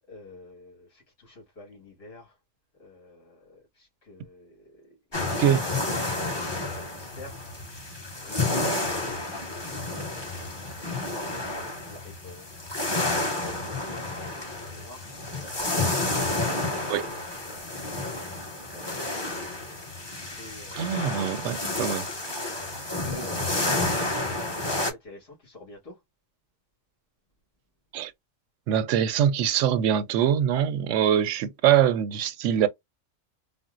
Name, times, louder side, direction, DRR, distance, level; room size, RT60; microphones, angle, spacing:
voice 1, 0.1-2.4 2.8-5.0 5.9-12.9 13.4-15.2 16.3-19.0 20.4-21.1 22.4-26.0, left 2 dB, 55° left, 1.9 m, -49 dB
sound 1, 5.1-24.9, left 2 dB, 20° left, 1.1 m, -30 dB
voice 2, 20.7-22.0 27.9-28.1 28.7-32.7, right 9 dB, 75° right, 0.9 m, -23 dB
4.2 x 2.0 x 2.4 m
omnidirectional pair, 1.3 m